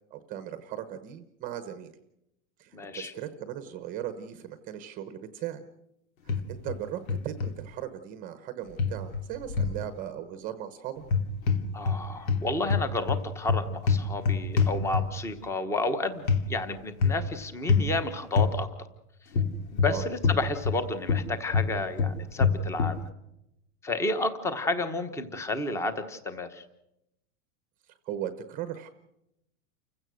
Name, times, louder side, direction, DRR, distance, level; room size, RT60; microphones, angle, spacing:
voice 1, 0.1-1.9 2.6-5.7 6.2-11.0 19.8-20.0 28.0-28.9, right 11 dB, 20° right, 10 dB, 0.9 m, -38 dB
voice 2, 2.7-3.1 11.7-18.7 19.7-23.0 23.8-26.6, left 2 dB, 5° left, 10 dB, 1.0 m, -31 dB
sound 1, 6.3-6.8 7.1-7.5 8.8-9.8 11.0-12.0 12.3-15.3 16.3-16.4 17.0-17.3 17.7-17.9 18.4-18.5 19.3-20.8 21.1-23.0, left 5 dB, 85° left, 2.9 m, -25 dB
29.5 x 16.5 x 6.3 m, 0.85 s
supercardioid pair, 175°, 40 cm